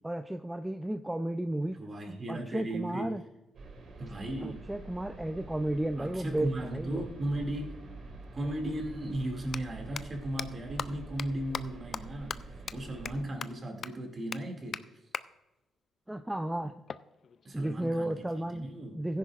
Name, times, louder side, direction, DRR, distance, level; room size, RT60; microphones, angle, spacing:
voice 1, 0.0-1.8 2.1-3.2 4.4-7.0 16.1-16.7 17.5-18.7 18.9-19.2, right 1 dB, 10° right, 7 dB, 0.5 m, -33 dB
voice 2, 1.8-3.2 4.0-4.6 6.0-7.8 8.3-12.4 12.7-14.9 17.4-18.2 18.5-19.0, right 1 dB, 35° right, 3 dB, 2.3 m, -36 dB
sound 1, 3.5-13.2, right 2 dB, 55° right, 2.1 m, -46 dB
sound 2, 8.2-8.3 9.4-9.6 10.0-10.1 10.4-10.5 10.8-10.9 11.2-11.3 11.5-11.6 11.9-12.0 12.3-12.4 12.7-12.8 13.1-13.2 13.4-13.5 13.8-13.9 14.3-14.4 14.7-14.8 15.1-15.2 16.9-17.9, left 6 dB, 50° left, 0.4 m, -37 dB
15.5 x 10.0 x 2.5 m, 1.0 s
cardioid pair, 90°, 0 cm